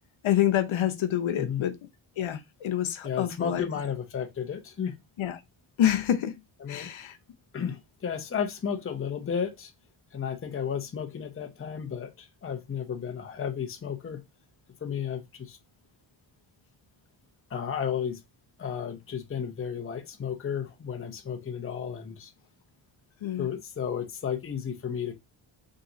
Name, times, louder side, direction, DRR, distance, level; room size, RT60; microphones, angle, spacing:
voice 1, 0.2-1.8 2.2-3.7 5.2-5.4 5.8-6.4 6.7-7.2 23.2-23.5, left 11 dB, 75° left, 0.8 m, -27 dB
voice 2, 3.0-5.0 6.6-6.9 7.5-9.7 10.1-14.2 14.8-15.6 17.5-18.2 18.6-22.3 23.4-25.1, left 7 dB, 25° left, 0.7 m, -33 dB
3.8 x 2.9 x 3.9 m
wide cardioid pair, 145°, 48 cm